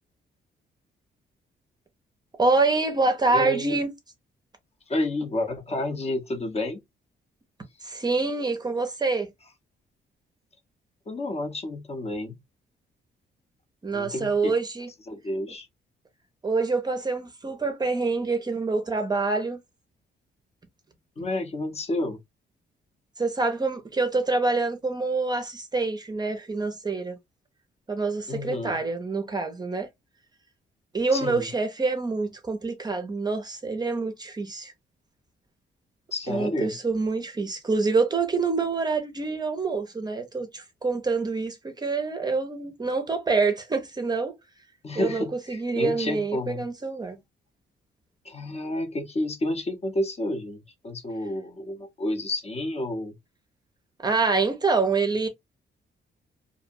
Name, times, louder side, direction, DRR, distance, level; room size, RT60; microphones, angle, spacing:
voice 1, 2.4-3.9 7.8-9.3 13.8-14.9 16.4-19.6 23.2-27.2 27.9-29.9 30.9-34.7 36.3-44.3 44.9-47.2 54.0-55.3, right 3 dB, 20° right, 0.5 m, -26 dB
voice 2, 3.3-3.8 4.9-6.8 11.1-12.4 13.9-14.5 15.1-15.7 21.2-22.2 28.3-28.8 31.1-31.5 36.1-36.7 44.8-46.6 48.2-53.1, left 1 dB, 35° left, 0.7 m, -30 dB
2.5 x 2.1 x 2.6 m
cardioid pair, 110°, 18 cm